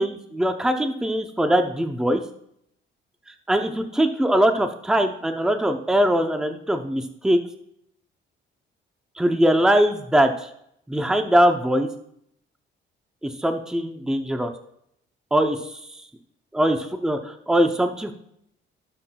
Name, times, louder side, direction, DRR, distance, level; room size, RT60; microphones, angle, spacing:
voice 1, 0.0-2.2 3.5-7.4 9.2-10.5 10.9-11.9 13.2-14.5 15.3-15.6 16.5-18.1, equal, 5° right, 6 dB, 0.6 m, -21 dB
16.0 x 5.9 x 2.3 m, 0.72 s
cardioid pair, 150°, 20 cm